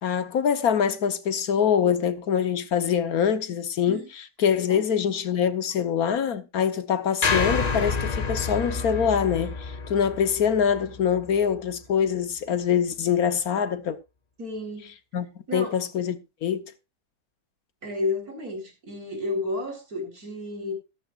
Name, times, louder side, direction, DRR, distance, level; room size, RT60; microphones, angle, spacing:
voice 1, 0.0-4.0 4.4-14.0 15.1-15.3 15.5-16.7, left 8 dB, 75° left, 1.5 m, -24 dB
sound 1, 7.2-11.5, left 4 dB, 35° left, 0.9 m, -28 dB
voice 2, 14.4-14.9 15.5-15.8 17.8-20.7, left 2 dB, 75° right, 4.5 m, -31 dB
13.5 x 13.5 x 2.5 m
omnidirectional pair, 1.6 m